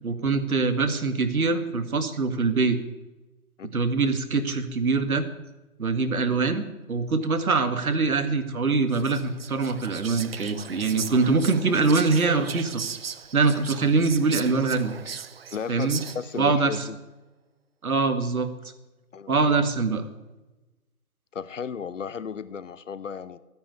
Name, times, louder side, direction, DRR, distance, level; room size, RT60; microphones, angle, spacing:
voice 1, 0.0-2.8 3.7-5.2 5.8-12.8 13.3-14.9 15.7-16.0 16.4-16.8 17.8-18.5 19.3-20.1, right 4 dB, 70° right, 9 dB, 2.0 m, -23 dB
Whispering, 8.9-16.5, right 6 dB, 45° right, 0.5 m, -38 dB
voice 2, 15.5-17.0 19.1-19.3 21.3-23.4, left 6 dB, 55° left, 15 dB, 0.9 m, -34 dB
13.0 x 10.0 x 8.0 m, 1.1 s
figure-of-eight pair, 145°, 45 cm